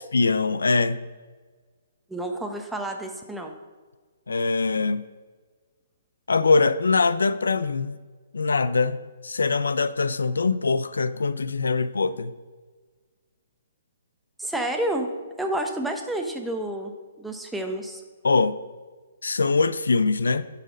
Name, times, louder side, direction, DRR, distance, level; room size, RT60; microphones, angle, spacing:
voice 1, 0.1-1.0 4.3-5.0 6.3-8.0 8.3-12.3 18.2-18.6 19.2-20.4, left 4 dB, 85° left, 0.4 m, -23 dB
voice 2, 2.1-3.5 14.4-15.1 15.4-16.9 17.2-18.0, right 1 dB, 5° right, 0.9 m, -29 dB
11.0 x 4.1 x 5.1 m
hypercardioid pair, 135°, 0 cm